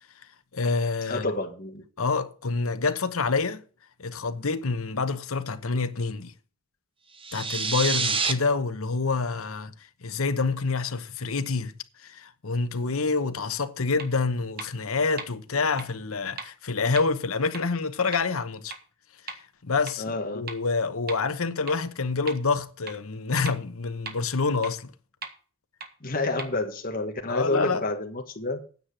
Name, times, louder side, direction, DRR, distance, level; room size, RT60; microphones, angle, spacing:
voice 1, 0.5-1.3 2.0-3.6 4.0-6.3 7.3-9.7 10.0-11.7 12.0-18.7 19.2-20.0 20.3-24.9 27.3-27.9, left 4 dB, 75° left, 1.0 m, -27 dB
voice 2, 1.1-1.8 20.0-20.5 26.0-28.6, left 2 dB, 40° left, 1.7 m, -29 dB
sound 1, 7.2-8.3, right 4 dB, 25° right, 0.9 m, -26 dB
sound 2, 14.0-14.1 14.6-14.7 15.2-15.3 15.8-15.9 16.4-16.5 17.0-17.1 17.5-17.6 18.1-18.2 18.7-18.8 19.3-19.4 19.9-20.0 20.5-20.6 21.1-21.2 21.7-21.8 22.3-22.4 22.9-23.0 23.5-23.6 24.1-24.2 24.6-24.7 25.2-25.3 25.8-25.9 26.4-26.5, right 5 dB, 45° right, 1.6 m, -36 dB
9.5 x 7.5 x 6.4 m
head